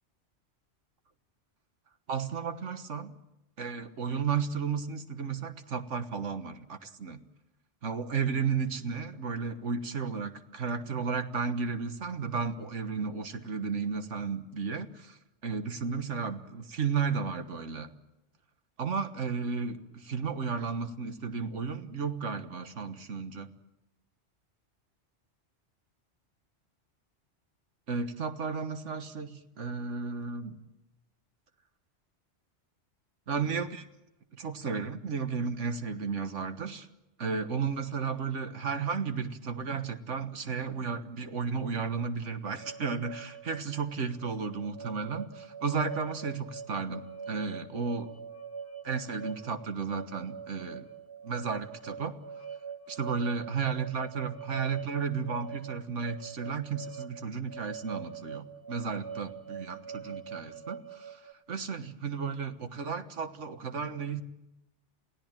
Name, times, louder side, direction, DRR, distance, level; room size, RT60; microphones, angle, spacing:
voice 1, 2.1-3.1 3.6-7.2 7.8-15.2 15.4-17.9 18.8-23.5 27.9-30.6 33.3-33.8 34.4-36.9 37.2-48.2 48.8-50.9 51.2-52.2 52.9-64.2, right 5 dB, 80° right, 9 dB, 1.7 m, -33 dB
sound 1, 42.6-61.3, right 6 dB, 10° left, 1.5 m, -44 dB
29.0 x 17.0 x 9.0 m, 0.93 s
omnidirectional pair, 1.2 m